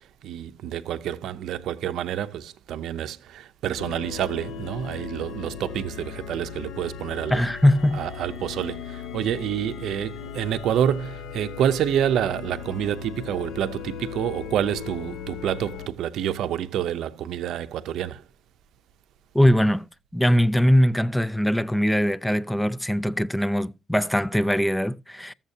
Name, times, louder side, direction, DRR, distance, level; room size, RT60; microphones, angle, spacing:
voice 1, 0.0-7.4 7.9-18.2, right 10 dB, 80° right, 0.6 m, -28 dB
sound 1, 3.8-15.9, left 8 dB, 90° left, 0.8 m, -38 dB
voice 2, 7.3-8.0 19.3-19.8 20.1-25.3, equal, 5° left, 0.4 m, -21 dB
14.5 x 7.2 x 2.7 m
cardioid pair, 90°, 0 cm